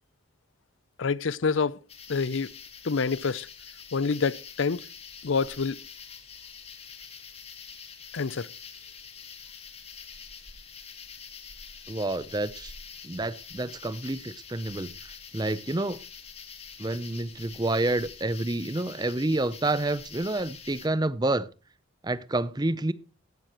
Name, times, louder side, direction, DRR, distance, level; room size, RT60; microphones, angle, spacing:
voice 1, 1.0-1.8 2.1-2.5 2.8-3.5 3.9-4.9 5.2-5.8 8.1-8.5, left 5 dB, 70° left, 0.6 m, -27 dB
sound 1, 1.9-20.9, left 6 dB, 30° left, 1.8 m, -45 dB
voice 2, 11.9-12.7 13.0-14.9 15.3-16.0 16.8-21.5 22.0-22.9, right 2 dB, 20° right, 0.6 m, -28 dB
16.0 x 11.5 x 3.0 m
head